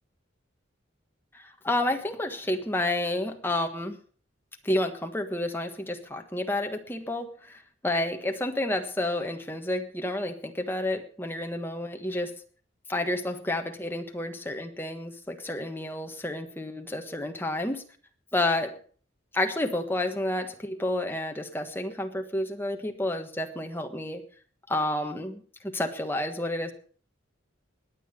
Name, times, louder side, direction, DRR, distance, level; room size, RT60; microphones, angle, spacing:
voice 1, 1.3-4.0 4.6-12.3 12.9-17.8 18.3-18.7 19.3-24.2 24.7-26.7, left 1 dB, 10° left, 5 dB, 1.4 m, -30 dB
20.5 x 8.8 x 5.3 m, 0.44 s
head